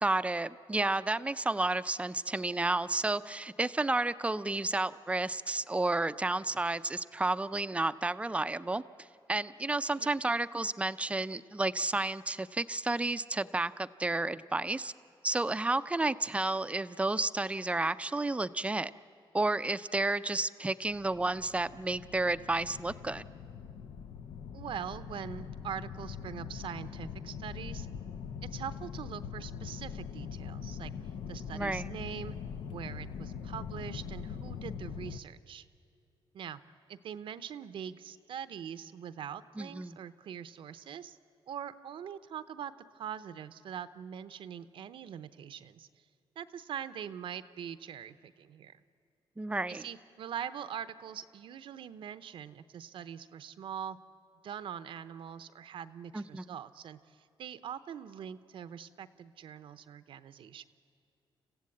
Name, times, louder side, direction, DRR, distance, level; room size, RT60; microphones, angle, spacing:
voice 1, 0.0-8.8 9.3-14.9 15.2-18.9 19.3-23.2 31.5-31.8 39.6-40.0 49.4-49.9 56.1-56.4, right 2 dB, 15° right, 13 dB, 0.5 m, -31 dB
sound 1, 20.9-35.2, left 7 dB, 85° left, 0.7 m, -42 dB
voice 2, 24.5-27.9 28.5-30.9 31.3-32.3 32.7-35.7 36.3-36.6 36.9-41.2 41.5-45.9 46.4-48.8 49.7-54.0 54.4-60.7, right 9 dB, 75° right, 13 dB, 0.8 m, -43 dB
28.5 x 15.5 x 8.6 m, 2.4 s
cardioid pair, 115°, 9 cm